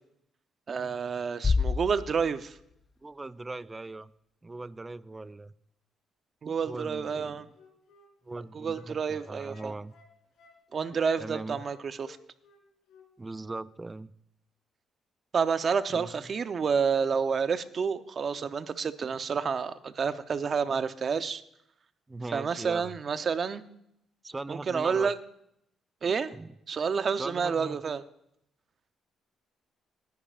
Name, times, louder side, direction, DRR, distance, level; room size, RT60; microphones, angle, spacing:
voice 1, 0.7-2.6 6.4-7.5 8.5-9.7 10.7-12.2 15.3-21.4 22.3-23.6 24.5-25.2 26.0-26.3 26.7-28.0, right 6 dB, 45° right, 11 dB, 0.7 m, -29 dB
Bass drum, 1.4-3.1, left 4 dB, 35° left, 0.5 m, -29 dB
voice 2, 3.0-4.1 4.4-5.5 6.6-7.4 8.2-9.9 11.2-11.6 13.2-14.1 15.9-16.2 22.1-22.9 24.2-25.1 26.3-26.5 27.2-27.8, right 2 dB, 20° right, 17 dB, 0.4 m, -39 dB
Wind instrument woodwind instrument, 7.1-11.8 12.0-13.1 13.3-13.5, left 4 dB, 85° left, 3.3 m, -57 dB
20.5 x 10.5 x 2.5 m, 0.75 s
cardioid pair, 90°, 0 cm